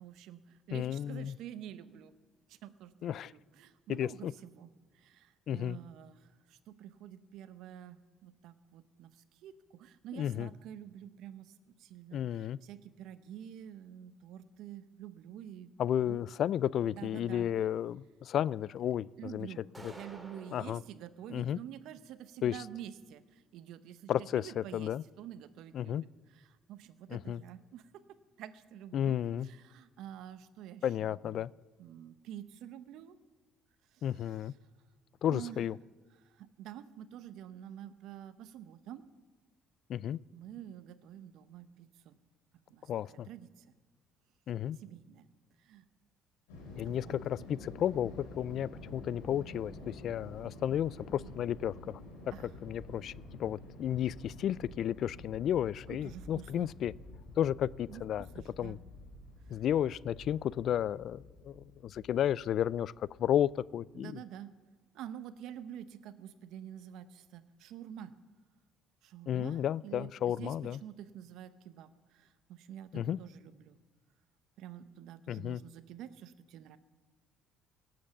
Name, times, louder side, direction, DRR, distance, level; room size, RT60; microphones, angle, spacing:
voice 1, 0.0-2.1 2.5-11.5 11.8-15.7 16.0-16.2 16.9-17.5 19.2-27.9 28.4-31.5 31.8-33.2 33.9-34.4 35.3-35.7 36.2-39.0 40.3-42.2 42.7-43.7 44.8-45.3 45.6-45.9 46.8-47.2 52.3-52.5 55.9-56.7 57.9-58.8 63.9-64.5 64.9-68.1 69.0-70.5 70.8-73.8 74.6-76.8, right 10 dB, 70° right, 13 dB, 0.8 m, -48 dB
voice 2, 0.7-1.4 3.0-3.3 4.0-4.3 5.5-5.8 10.1-10.5 12.1-12.6 15.8-19.5 19.8-19.9 20.5-20.8 21.3-21.6 22.4-22.6 24.1-25.0 25.7-26.0 27.1-27.4 28.9-29.5 30.8-31.5 34.0-34.5 35.2-35.8 39.9-40.2 42.9-43.3 44.5-44.8 46.8-52.0 52.6-53.1 53.4-56.9 57.4-58.3 58.6-58.8 59.5-64.2 69.3-70.8 72.9-73.2 75.3-75.6, left 10 dB, 60° left, 23 dB, 0.3 m, -33 dB
sound 1, 19.7-20.8, right 2 dB, 15° right, 2.8 m, -50 dB
sound 2, 46.5-63.6, left 1 dB, 85° left, 3.7 m, -50 dB
18.0 x 7.8 x 7.2 m, 1.4 s
hypercardioid pair, 65°, 0 cm